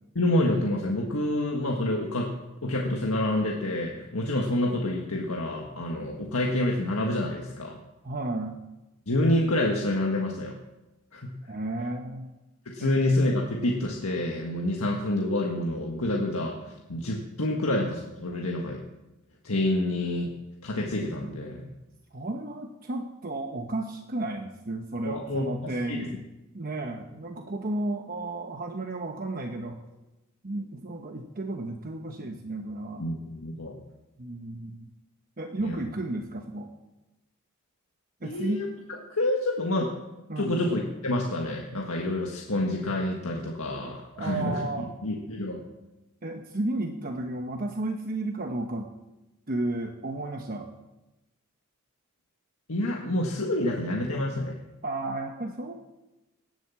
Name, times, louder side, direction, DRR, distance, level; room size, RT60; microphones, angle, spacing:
voice 1, 0.1-2.3 2.6-7.8 9.1-10.6 11.1-11.3 12.6-18.8 19.4-20.3 20.6-21.7 25.0-26.1 33.0-33.8 35.6-35.8 38.2-39.9 40.4-45.6 52.7-54.6, left 1 dB, 85° left, 0 dB, 1.6 m, -28 dB
voice 2, 8.0-8.6 11.5-12.3 12.8-13.0 22.1-26.2 26.5-29.8 30.4-33.0 34.2-34.9 35.4-36.7 38.2-38.6 40.3-40.5 44.2-44.9 46.2-48.9 49.5-50.7 54.8-55.7, right 2 dB, 45° right, 4 dB, 1.0 m, -33 dB
18.5 x 7.8 x 7.1 m, 1.0 s
head